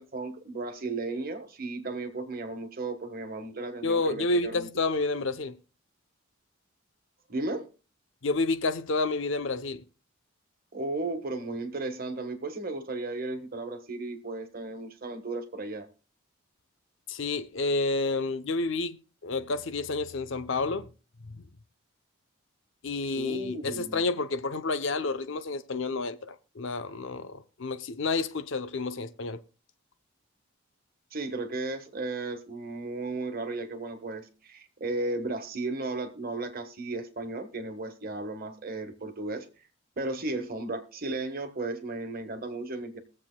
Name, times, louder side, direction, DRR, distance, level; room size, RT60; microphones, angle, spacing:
voice 1, 0.0-4.7 7.3-7.7 10.7-15.9 23.1-24.0 31.1-39.4 40.0-43.0, right 2 dB, 45° right, 1.3 m, -35 dB
voice 2, 3.8-5.6 8.2-9.8 17.1-19.0 19.2-20.9 21.3-21.5 22.8-29.4, left 3 dB, 60° left, 0.6 m, -30 dB
22.0 x 7.5 x 2.2 m
head